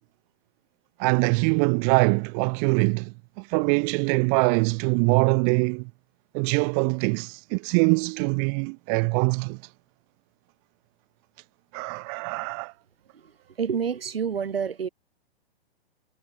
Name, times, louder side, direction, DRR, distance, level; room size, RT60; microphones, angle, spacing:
voice 1, 1.0-5.8 6.3-9.6 11.7-12.7, right 40 dB or more, 35° right, 3.4 m, -23 dB
voice 2, 13.6-14.9, right 7 dB, 65° right, 7.1 m, -28 dB
figure-of-eight pair, 115°, 31 cm